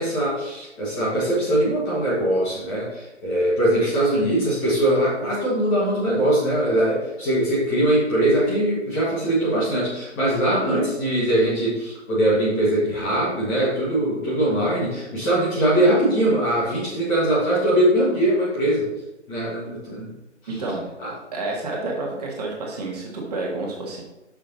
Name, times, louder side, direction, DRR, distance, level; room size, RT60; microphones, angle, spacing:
voice 1, 0.0-18.9 19.3-20.1 21.0-21.1, right 1 dB, 15° left, -7 dB, 1.3 m, -21 dB
voice 2, 20.5-20.8 21.3-24.0, right 2 dB, 35° right, -2 dB, 1.6 m, -29 dB
6.0 x 5.6 x 4.0 m, 0.97 s
figure-of-eight pair, 145°, 37 cm